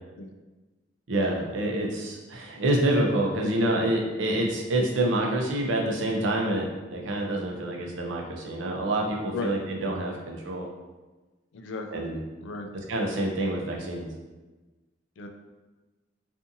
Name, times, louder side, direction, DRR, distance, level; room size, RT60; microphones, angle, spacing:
voice 1, 1.1-10.7 11.9-12.2 12.9-14.1, right 1 dB, 90° right, 0 dB, 0.5 m, -27 dB
voice 2, 11.5-12.1 12.4-12.7 15.2-15.3, left 3 dB, 75° left, 5 dB, 0.3 m, -35 dB
2.6 x 2.5 x 2.5 m, 1.2 s
head